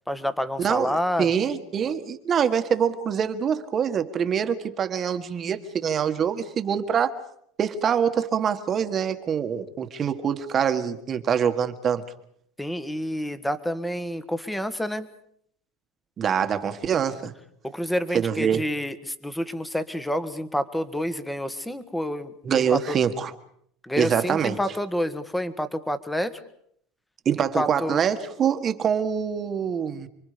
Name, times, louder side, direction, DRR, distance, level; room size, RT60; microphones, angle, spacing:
voice 1, 0.1-1.3 12.6-15.1 17.6-23.0 23.8-26.3 27.4-28.0, equal, 5° left, 1.6 m, -28 dB
voice 2, 0.6-7.2 7.6-12.0 16.2-17.3 18.1-18.6 22.5-23.3 24.0-24.6 27.3-30.1, right 7 dB, 35° right, 1.6 m, -25 dB
30.0 x 23.5 x 5.2 m
supercardioid pair, 125°, 0 cm